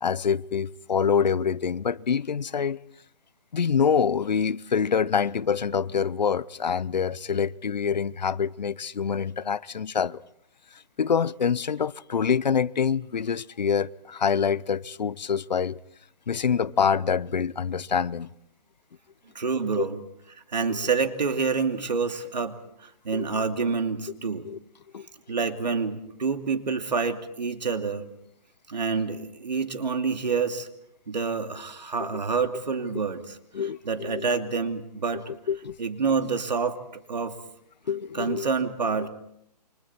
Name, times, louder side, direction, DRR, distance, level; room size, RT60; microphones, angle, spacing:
voice 1, 0.0-2.8 3.5-10.2 11.0-15.8 16.3-18.3 19.7-19.8 23.1-23.4 24.4-24.6 24.9-25.1 33.5-34.2 35.5-35.8 37.9-38.5, left 6 dB, 85° left, 0.8 m, -26 dB
voice 2, 19.3-20.0 20.5-24.5 25.3-28.1 28.7-30.7 31.1-33.4 33.8-35.2 35.8-37.4 38.1-39.1, right 5 dB, 85° right, 2.6 m, -27 dB
29.5 x 25.0 x 4.4 m
hypercardioid pair, 155°, 21 cm